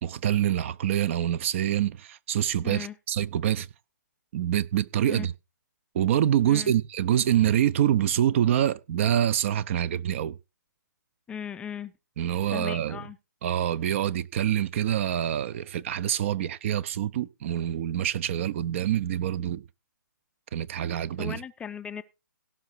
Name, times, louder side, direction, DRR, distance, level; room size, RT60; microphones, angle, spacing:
voice 1, 0.0-3.7 4.3-5.3 5.9-10.4 12.2-13.0 13.4-19.6 20.5-21.4, right 10 dB, 40° right, 0.7 m, -26 dB
voice 2, 2.6-3.0 5.0-5.3 6.5-6.7 11.3-11.9 12.5-13.2 21.2-22.0, left 8 dB, 10° left, 0.5 m, -37 dB
17.0 x 5.7 x 4.6 m
figure-of-eight pair, 140°, 10 cm